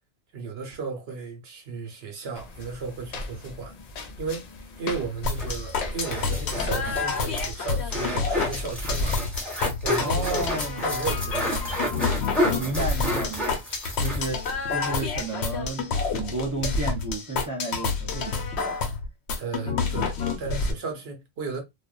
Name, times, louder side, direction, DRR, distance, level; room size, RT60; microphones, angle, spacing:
voice 1, 0.3-3.8 4.2-9.2 9.8-12.2 19.4-21.6, right 5 dB, 70° right, 1.0 m, -35 dB
sound 1, 2.3-7.5, left 3 dB, 55° left, 0.5 m, -39 dB
sound 2, 5.2-20.7, left 4 dB, 90° left, 0.9 m, -28 dB
sound 3, 5.2-14.6 14.9-15.0 15.2-15.3, left 1 dB, ahead, 0.9 m, -30 dB
voice 2, 10.0-10.8 12.3-13.6 14.0-18.8, right 2 dB, 25° right, 0.5 m, -32 dB
2.4 x 2.3 x 2.3 m
omnidirectional pair, 1.1 m